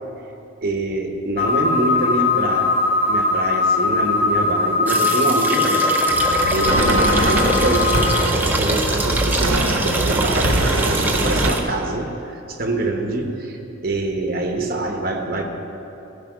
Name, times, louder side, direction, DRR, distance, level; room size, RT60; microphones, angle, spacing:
voice 1, 0.6-2.8 3.1-5.9 6.4-13.6 13.8-15.5, right 2 dB, 45° right, 3 dB, 1.1 m, -25 dB
sound 1, 1.4-8.2, left 3 dB, 30° left, 0.7 m, -20 dB
sound 2, 4.9-11.6, right 2 dB, 10° right, 0.6 m, -24 dB
sound 3, 6.1-11.5, right 2 dB, 85° right, 0.9 m, -22 dB
15.0 x 5.6 x 6.2 m, 2.8 s
head